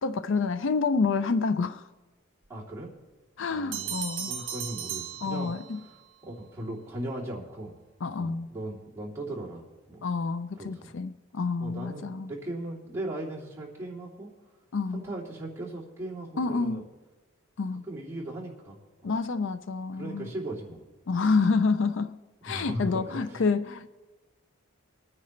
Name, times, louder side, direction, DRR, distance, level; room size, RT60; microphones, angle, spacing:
voice 1, 0.0-1.9 3.4-4.3 5.2-5.8 8.0-8.5 10.0-12.3 14.7-15.0 16.4-16.9 17.6-17.8 19.0-20.3 21.1-23.9, left 4 dB, 60° left, 0.5 m, -28 dB
voice 2, 2.5-2.9 3.5-5.5 5.8-6.0 6.2-7.7 8.2-10.0 10.5-10.9 11.6-14.3 14.9-16.8 17.9-19.1 20.0-20.8 22.5-23.4, right 1 dB, 15° right, 2.8 m, -38 dB
Bell, 3.7-6.0, right 8 dB, 60° right, 1.4 m, -36 dB
23.5 x 9.6 x 3.2 m
head